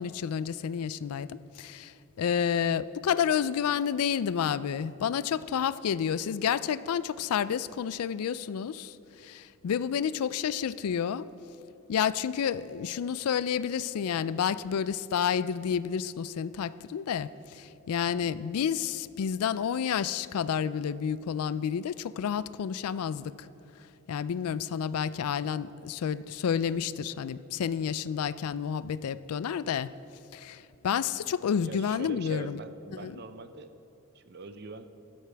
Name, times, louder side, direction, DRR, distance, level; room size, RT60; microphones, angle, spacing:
voice 1, 0.0-11.3 11.9-23.3 24.1-29.9 30.3-32.6 33.0-33.2, left 7 dB, 85° left, 17 dB, 0.4 m, -30 dB
voice 2, 31.6-33.7 34.1-34.9, right 4 dB, 45° right, 10 dB, 0.5 m, -43 dB
14.5 x 13.0 x 3.4 m, 2.9 s
head